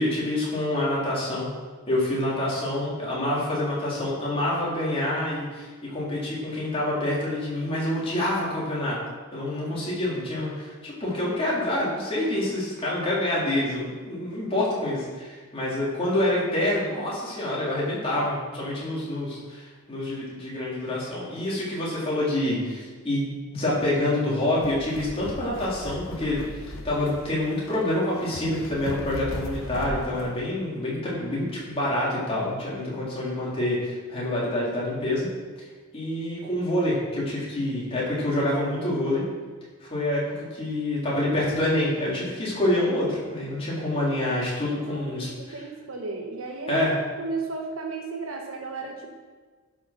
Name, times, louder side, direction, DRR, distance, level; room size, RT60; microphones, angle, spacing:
voice 1, 0.0-1.5 1.9-9.0 9.3-35.3 35.9-39.2 39.8-45.6 46.7-46.9, left 1 dB, 25° left, -7 dB, 3.7 m, -27 dB
sound 1, 24.3-30.4, left 2 dB, 65° left, 1.0 m, -38 dB
voice 2, 44.7-46.8 47.2-49.1, right 3 dB, 70° right, 2 dB, 1.4 m, -34 dB
11.0 x 6.2 x 5.9 m, 1.4 s
head